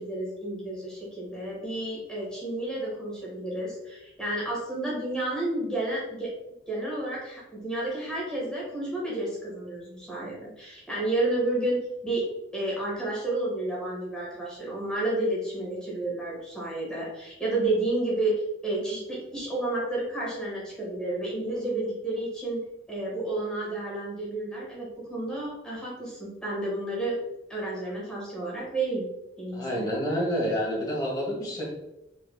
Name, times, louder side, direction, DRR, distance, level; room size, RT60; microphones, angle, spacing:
voice 1, 0.0-6.3 6.7-12.2 12.5-22.6 22.9-27.2 27.5-29.1 29.4-29.8, right 2 dB, 5° left, -6 dB, 1.5 m, -31 dB
voice 2, 29.5-31.6, equal, 20° left, -4 dB, 1.5 m, -28 dB
4.3 x 4.1 x 2.2 m, 0.91 s
head